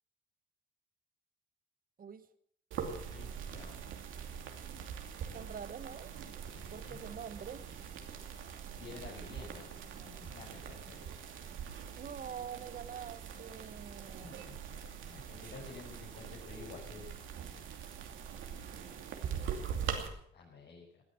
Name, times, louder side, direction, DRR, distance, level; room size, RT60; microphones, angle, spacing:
sound 1, 2.7-20.1, right 7 dB, 80° right, 2.7 m, -43 dB
voice 1, 3.0-3.8 6.5-7.0 8.8-11.1 14.2-17.0 20.3-21.0, left 4 dB, 60° left, -5 dB, 6.4 m, -51 dB
voice 2, 5.3-6.1 6.7-7.6 11.9-14.4, right 7 dB, 45° right, 13 dB, 1.2 m, -45 dB
18.5 x 10.0 x 7.6 m, 0.67 s
cardioid pair, 90°, 20 cm